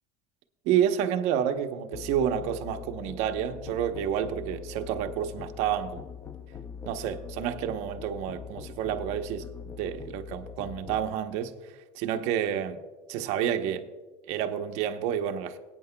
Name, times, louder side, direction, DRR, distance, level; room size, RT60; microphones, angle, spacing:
voice 1, 0.6-6.0 6.9-9.5 9.8-11.5 11.9-12.8 13.1-13.8 14.3-15.6, right 9 dB, 60° right, 7 dB, 0.8 m, -29 dB
Musical instrument, 1.9-11.2, left 6 dB, 20° left, 0.4 m, -42 dB
21.5 x 8.9 x 2.2 m, 1.3 s
cardioid pair, 145°, 13 cm